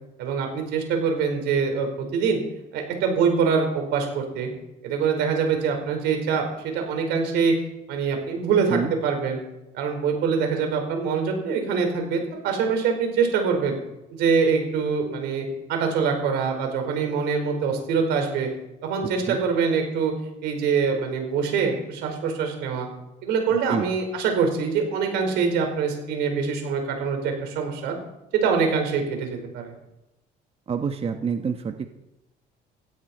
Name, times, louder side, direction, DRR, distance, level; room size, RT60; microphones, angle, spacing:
voice 1, 0.2-2.4 2.7-4.5 4.8-7.5 7.9-9.4 9.7-13.8 14.1-18.5 18.8-20.1 20.4-22.9 23.2-27.9 28.3-29.7, right 5 dB, 90° right, 4 dB, 4.7 m, -24 dB
voice 2, 30.7-31.9, right 6 dB, 35° right, 6 dB, 1.1 m, -27 dB
16.5 x 16.5 x 4.4 m, 0.93 s
cardioid pair, 110°, 17 cm